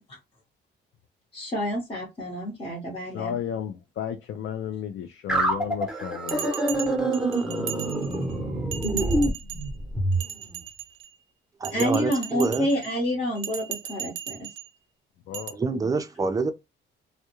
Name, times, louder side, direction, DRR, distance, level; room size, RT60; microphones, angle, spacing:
voice 1, 1.3-3.4 11.7-14.5, equal, 30° left, 1.0 m, -28 dB
voice 2, 3.1-6.5 15.3-15.6, left 9 dB, 70° left, 0.4 m, -33 dB
sound 1, 5.3-10.2, right 1 dB, ahead, 0.9 m, -26 dB
Bell, 6.3-8.3 8.7-9.7 10.1-11.1 11.6-12.9 13.4-14.7 15.3-15.5, right 11 dB, 85° right, 0.4 m, -37 dB
voice 3, 11.6-12.7 15.5-16.5, right 4 dB, 20° right, 0.4 m, -26 dB
2.2 x 2.1 x 2.9 m
cardioid pair, 90°, 20 cm